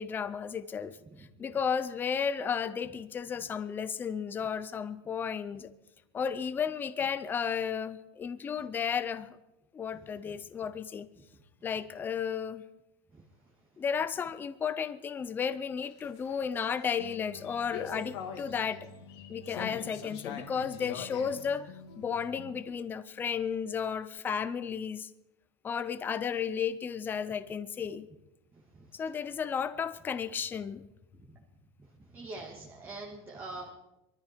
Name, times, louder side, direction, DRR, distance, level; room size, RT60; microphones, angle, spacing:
voice 1, 0.0-5.7 6.1-9.4 9.7-11.1 11.6-12.6 13.8-18.9 19.3-25.1 25.6-28.1 28.9-30.8, left 7 dB, 15° left, 0.5 m, -33 dB
sound 1, 15.8-22.6, left 6 dB, 80° left, 2.6 m, -44 dB
voice 2, 32.1-33.7, right 2 dB, 15° right, 2.0 m, -42 dB
23.5 x 13.5 x 4.5 m
supercardioid pair, 170°, 14 cm